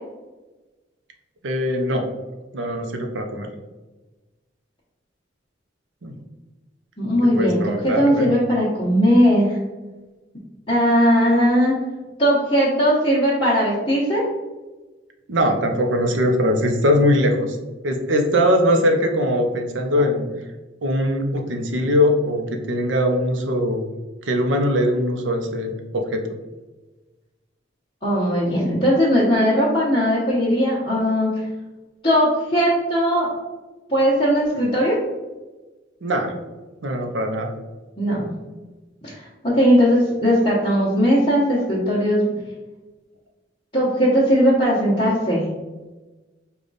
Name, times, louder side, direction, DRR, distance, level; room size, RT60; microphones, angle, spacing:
voice 1, 1.4-2.1 2.5-3.5 6.0-6.1 7.4-8.3 15.3-17.6 17.8-20.2 20.8-23.8 24.3-26.2 36.0-36.3 36.8-37.5, equal, 85° right, 4 dB, 0.7 m, -21 dB
voice 2, 7.0-9.5 10.7-11.7 12.2-14.2 28.0-31.3 32.0-33.3 33.9-35.0 38.0-38.3 39.0-42.2 43.7-45.5, equal, 30° left, -9 dB, 0.9 m, -18 dB
5.1 x 2.4 x 3.9 m, 1.2 s
head